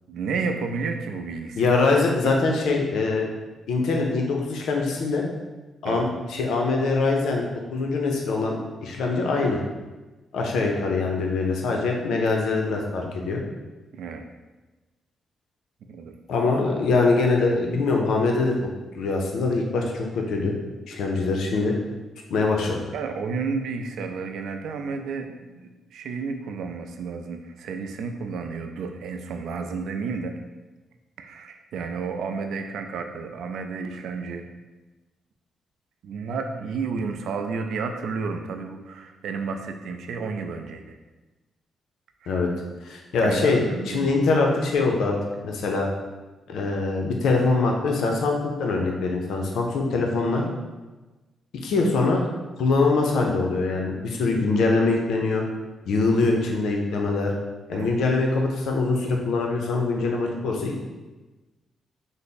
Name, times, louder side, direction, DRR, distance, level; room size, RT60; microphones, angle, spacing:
voice 1, 0.1-1.8 2.2-2.4 5.8-6.1 13.9-14.3 15.9-16.2 22.9-30.4 31.2-34.4 36.0-41.0 42.2-42.4 43.2-44.2 57.7-58.0, right 4 dB, 80° right, 5 dB, 0.3 m, -31 dB
voice 2, 1.6-3.2 3.7-5.2 5.8-9.6 10.3-13.4 16.3-18.5 18.9-20.6 20.9-21.8 22.3-22.8 42.3-42.5 42.8-45.2 45.4-45.9 46.5-50.4 51.6-52.2 52.6-55.4 55.9-57.3 57.7-60.8, left 3 dB, 80° left, 1 dB, 0.5 m, -23 dB
3.3 x 2.0 x 4.1 m, 1.2 s
cardioid pair, 95°, 0 cm